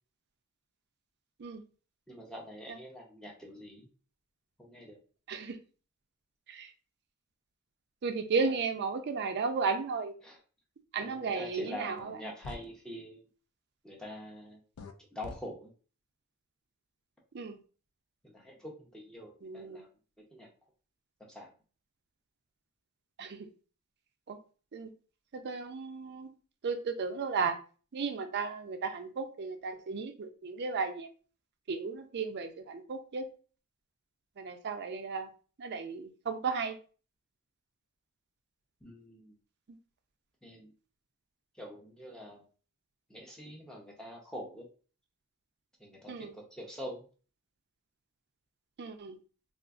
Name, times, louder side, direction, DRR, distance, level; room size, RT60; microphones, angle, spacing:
voice 1, 2.1-3.9 4.6-5.0 8.4-8.6 10.2-10.4 11.0-13.2 13.8-14.6 15.1-15.7 18.2-19.9 20.3-20.5 21.2-21.5 38.8-39.3 40.4-40.7 41.5-42.4 43.1-44.7 45.8-47.1, equal, 5° left, -2 dB, 0.5 m, -45 dB
voice 2, 8.0-10.1 10.9-12.2 17.3-17.6 19.4-19.8 23.2-23.5 24.3-24.4 24.7-24.9 25.4-26.3 26.6-27.6 27.9-31.1 31.7-33.3 34.4-35.3 35.6-36.8 46.1-46.3 48.8-49.2, right 4 dB, 50° right, 7 dB, 0.4 m, -34 dB
sound 1, 12.0-12.1 12.4-12.7 14.8-14.9 15.2-15.4, left 3 dB, 70° left, 0.4 m, -43 dB
3.7 x 2.4 x 2.3 m, 0.38 s
head